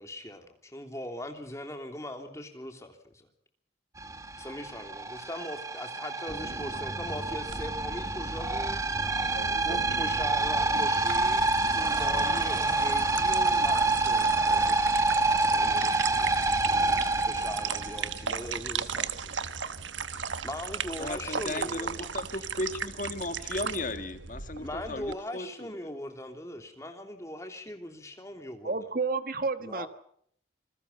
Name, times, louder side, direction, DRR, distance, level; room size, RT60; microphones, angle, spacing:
voice 1, 0.0-3.3 4.4-9.2 9.6-14.8 15.5-16.3 17.3-19.4 20.4-22.1 24.6-28.7 29.6-29.9, left 1 dB, 15° left, 3.2 m, -40 dB
sound 1, 4.0-18.5, right 2 dB, 15° right, 1.5 m, -27 dB
voice 2, 6.4-6.8 28.6-29.9, right 4 dB, 50° right, 1.4 m, -31 dB
sound 2, 7.5-25.1, right 6 dB, 90° right, 1.3 m, -37 dB
voice 3, 21.0-25.9, left 2 dB, 45° left, 1.7 m, -36 dB
27.5 x 21.5 x 5.6 m
head